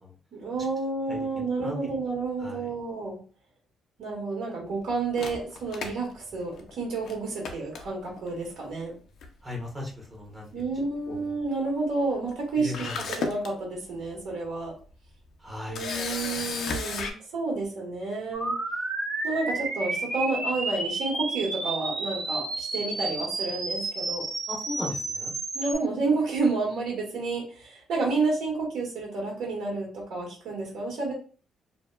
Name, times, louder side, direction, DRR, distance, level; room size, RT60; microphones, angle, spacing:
voice 1, 0.3-3.2 4.0-8.9 10.5-12.9 13.2-14.7 15.7-18.5 19.2-24.3 25.5-31.1, right 3 dB, 80° right, -2 dB, 1.4 m, -30 dB
voice 2, 1.1-1.7 2.4-2.7 9.4-10.7 11.1-11.3 12.6-13.3 15.4-15.9 24.5-25.3, left 2 dB, 25° right, -1 dB, 0.9 m, -37 dB
Camera, 5.2-6.7 7.1-7.2 7.4-8.3 9.2-9.5 9.8-9.9 12.3-12.4 12.7-13.5 14.1-14.2 15.8-17.1, left 4 dB, 70° left, 0.4 m, -33 dB
sound 1, 18.3-25.7, right 3 dB, 55° right, 0.7 m, -31 dB
2.7 x 2.2 x 2.2 m, 0.39 s
cardioid pair, 90°, 0 cm